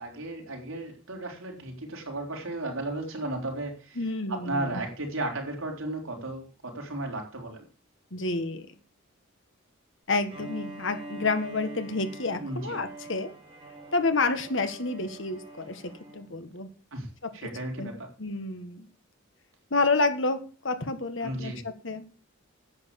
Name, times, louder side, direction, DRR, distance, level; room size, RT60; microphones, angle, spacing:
voice 1, 0.0-4.0 4.3-7.7 12.4-12.8 16.9-17.1 17.3-18.1 21.2-21.6, right 2 dB, 75° right, 1 dB, 4.2 m, -34 dB
voice 2, 4.0-4.8 8.1-8.7 10.1-13.3 13.9-15.8 16.1-16.7 17.2-17.3 17.8-17.9 18.2-18.9 19.7-22.0, left 3 dB, 65° left, 9 dB, 1.6 m, -29 dB
Bowed string instrument, 10.3-16.3, right 2 dB, 25° right, 4.7 m, -44 dB
10.5 x 8.2 x 7.1 m, 0.38 s
head